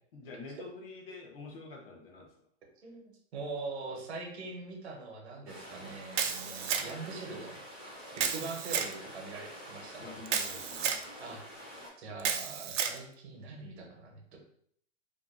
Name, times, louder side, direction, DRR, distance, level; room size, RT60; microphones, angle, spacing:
voice 1, 0.1-2.3 5.7-5.9 10.0-11.1, left 3 dB, 55° left, 1 dB, 0.7 m, -47 dB
voice 2, 2.8-7.6 8.1-10.1 11.2-11.5 12.0-14.4, right 3 dB, 65° right, 0 dB, 0.8 m, -43 dB
sound 1, 5.5-11.9, equal, 10° left, 0.5 m, -47 dB
Camera, 6.1-7.1 8.2-8.9 10.3-11.0 12.2-13.0, right 7 dB, 80° right, 0.5 m, -32 dB
2.5 x 2.2 x 2.4 m, 0.64 s
hypercardioid pair, 170°, 36 cm